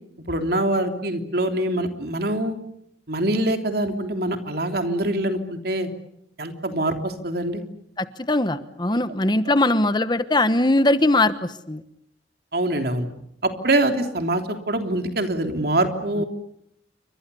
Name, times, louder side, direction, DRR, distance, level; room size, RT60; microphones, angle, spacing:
voice 1, 0.3-2.6 3.1-5.9 6.4-7.6 12.5-13.1 13.4-16.2, right 1 dB, 60° right, 6 dB, 3.2 m, -24 dB
voice 2, 8.0-11.3 11.7-11.8 16.2-16.3, left 2 dB, 25° left, 12 dB, 1.1 m, -20 dB
30.0 x 25.0 x 7.0 m, 0.76 s
head